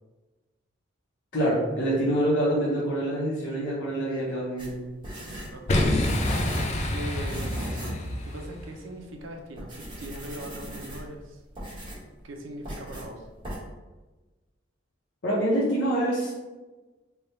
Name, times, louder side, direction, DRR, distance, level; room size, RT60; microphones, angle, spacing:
voice 1, 1.3-4.8 15.2-16.3, right 1 dB, 60° left, -7 dB, 0.8 m, -26 dB
sound 1, 4.6-6.8 7.2-8.0 8.4-8.5 9.1-9.2 9.5-11.2 11.5-12.1 12.6-13.1 13.4-13.6, right 1 dB, 25° right, 1.4 m, -38 dB
voice 2, 5.5-6.0 6.9-11.4 12.2-13.3, right 1 dB, 80° right, 3 dB, 0.6 m, -40 dB
Boom, 5.7-8.7, left 1 dB, 35° left, 0.4 m, -27 dB
3.4 x 2.3 x 4.1 m, 1.2 s
head